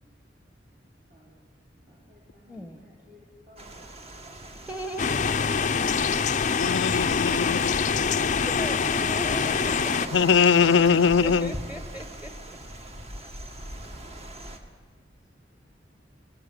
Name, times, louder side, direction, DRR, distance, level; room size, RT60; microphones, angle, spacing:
voice 1, 1.7-3.7 10.8-10.9, right 1 dB, 55° right, -6 dB, 5.0 m, -52 dB
voice 2, 2.5-2.8 4.7-5.7 8.4-10.1 11.2-12.3, equal, 5° right, 7 dB, 1.2 m, -37 dB
sound 1, 3.6-14.6, right 1 dB, 35° right, 1.8 m, -40 dB
sound 2, 5.0-10.1, left 5 dB, 45° left, 0.6 m, -25 dB
voice 3, 6.6-7.7 10.1-11.5, left 6 dB, 85° left, 17 dB, 0.5 m, -21 dB
18.0 x 16.0 x 9.3 m, 1.5 s
head